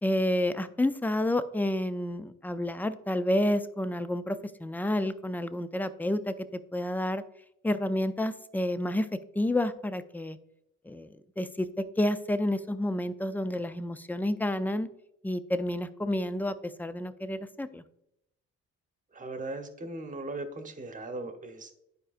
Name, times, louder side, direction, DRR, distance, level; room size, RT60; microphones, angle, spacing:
voice 1, 0.0-6.3 6.7-7.2 7.6-9.1 9.4-10.4 10.9-14.9 15.2-17.8, left 1 dB, 5° left, 12 dB, 0.4 m, -29 dB
voice 2, 19.1-21.8, right 2 dB, 25° right, 6 dB, 1.0 m, -38 dB
11.0 x 4.9 x 2.5 m, 0.79 s
cardioid pair, 90°, 30 cm